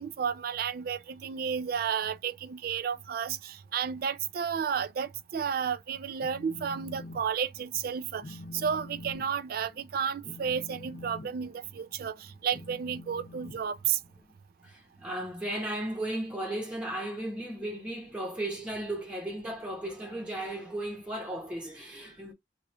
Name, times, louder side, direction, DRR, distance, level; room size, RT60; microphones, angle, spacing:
voice 1, 0.0-14.0, right 7 dB, 55° right, 0.4 m, -32 dB
Telephone, 6.2-7.2 7.5-7.8 8.2-14.3, left 1 dB, 45° left, 0.6 m, -46 dB
voice 2, 14.6-22.3, right 1 dB, 5° right, 0.9 m, -35 dB
3.0 x 2.3 x 3.0 m
head